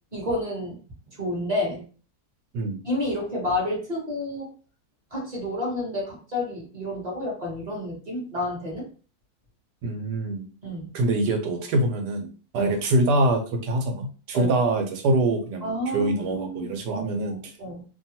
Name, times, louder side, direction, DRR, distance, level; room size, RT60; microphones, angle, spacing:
voice 1, 0.1-0.8 1.2-1.8 2.8-4.5 5.1-8.8 10.6-10.9 12.6-12.7 14.3-14.5 15.6-17.0 17.6-17.8, left 1 dB, 30° right, -3 dB, 0.9 m, -30 dB
voice 2, 9.8-10.4 10.9-12.3 12.5-17.5, right 2 dB, 85° right, 4 dB, 1.2 m, -24 dB
2.8 x 2.3 x 2.7 m, 0.38 s
omnidirectional pair, 1.8 m